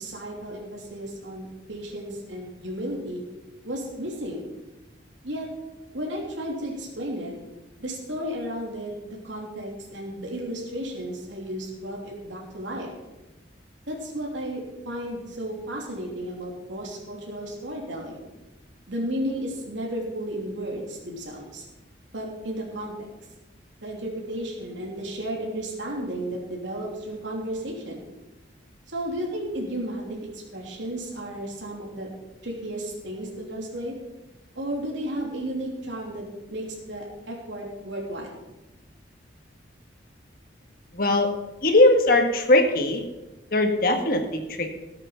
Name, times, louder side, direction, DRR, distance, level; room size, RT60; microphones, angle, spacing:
voice 1, 0.0-3.2 3.6-4.5 5.2-5.5 5.9-7.3 7.8-12.9 13.9-18.3 18.9-21.7 22.1-23.1 23.8-28.0 28.9-30.2 30.5-32.1 32.4-33.9 34.5-36.2 36.5-38.4, right 1 dB, 80° right, -2 dB, 3.2 m, -33 dB
voice 2, 40.9-41.3 41.6-43.0 43.5-44.8, left 1 dB, 50° left, 4 dB, 1.7 m, -20 dB
17.5 x 8.2 x 5.7 m, 1.0 s
head